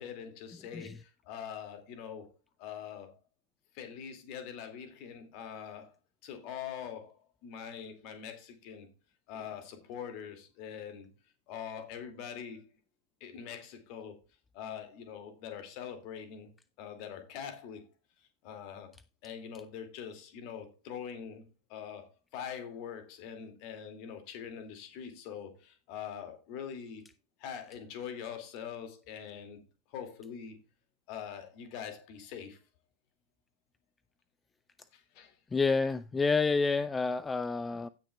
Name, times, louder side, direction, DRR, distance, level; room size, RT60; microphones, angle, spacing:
voice 1, 0.0-2.3 2.6-3.2 3.7-5.9 6.2-8.9 9.3-11.1 11.5-12.6 13.2-14.2 14.5-16.5 16.8-17.9 18.4-18.9 19.2-27.0 27.4-29.6 29.9-30.6 31.1-32.6 34.9-35.4, left 8 dB, 45° left, 2.2 m, -43 dB
voice 2, 35.5-37.9, left 4 dB, 15° left, 0.4 m, -29 dB
16.5 x 6.4 x 2.3 m
figure-of-eight pair, 90°, 0 cm